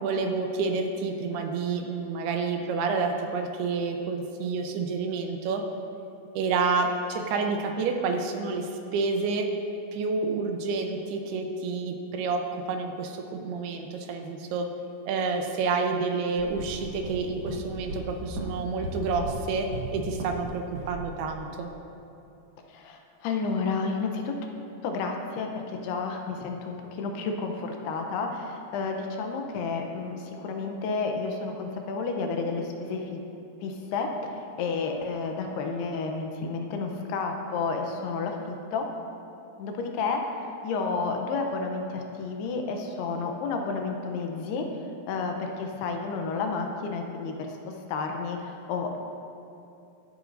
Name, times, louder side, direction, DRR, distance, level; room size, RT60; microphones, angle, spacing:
voice 1, 0.0-5.6 6.4-9.5 9.9-14.7 15.1-19.7 19.9-21.7, right 4 dB, 80° right, 3 dB, 2.6 m, -29 dB
sound 1, 16.4-20.5 20.7-21.0, right 1 dB, 60° right, 1.7 m, -36 dB
voice 2, 22.7-24.3 24.8-33.2 33.6-38.9 39.6-44.7 45.1-49.0, left 4 dB, 80° left, 3 dB, 2.7 m, -31 dB
22.0 x 8.2 x 2.6 m, 2.7 s
omnidirectional pair, 4.8 m